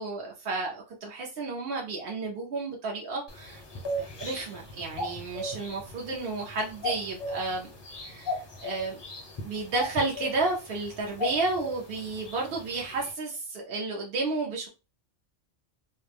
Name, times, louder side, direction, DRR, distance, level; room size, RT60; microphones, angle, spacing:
voice 1, 0.0-3.6 4.0-7.7 8.0-9.0 9.4-14.7, right 3 dB, 60° right, 0.8 m, -32 dB
sound 1, 3.3-13.1, left 1 dB, 35° left, 0.4 m, -38 dB
2.4 x 2.1 x 3.3 m
omnidirectional pair, 1.2 m